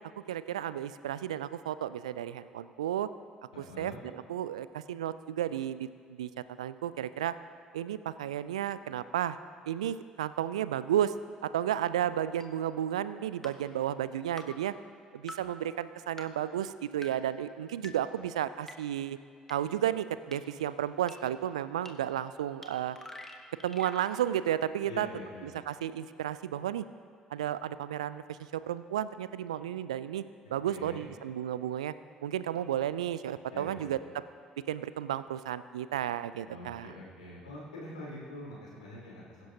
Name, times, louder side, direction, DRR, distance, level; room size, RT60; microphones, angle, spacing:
voice 1, 0.3-3.1 3.8-6.3 6.6-7.4 7.7-9.4 9.7-11.1 11.4-14.7 15.1-19.2 19.5-23.0 23.6-25.1 25.7-26.9 27.3-30.2 30.5-31.9 32.2-34.0 34.7-36.9, right 11 dB, 75° right, 15 dB, 0.3 m, -33 dB
voice 2, 3.5-4.0 24.8-25.5 30.6-31.1 33.5-34.1 36.4-39.5, left 1 dB, 80° left, -5 dB, 3.1 m, -45 dB
sound 1, 12.4-12.5 13.4-13.5 14.4-14.5 15.3-15.4 16.2-16.3 17.0-17.1 17.8-17.9 18.7-18.8 19.5-19.6 20.3-20.4 21.1-21.2 21.9-22.0 22.6-22.7 22.9-24.1, left 1 dB, 10° left, 1.5 m, -45 dB
22.0 x 10.5 x 2.8 m, 2.2 s
figure-of-eight pair, 50°, 3 cm